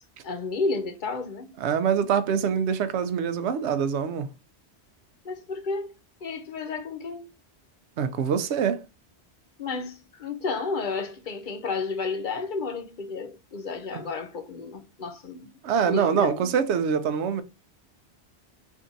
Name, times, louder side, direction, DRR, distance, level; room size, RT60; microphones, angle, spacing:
voice 1, 0.2-1.5 5.2-5.9 6.2-7.3 9.6-15.5 15.8-16.5, left 4 dB, 50° left, 0.8 m, -32 dB
voice 2, 1.6-4.3 8.0-8.8 13.9-14.0 15.6-17.4, right 7 dB, 80° right, 0.9 m, -25 dB
3.6 x 2.6 x 3.9 m
omnidirectional pair, 1.1 m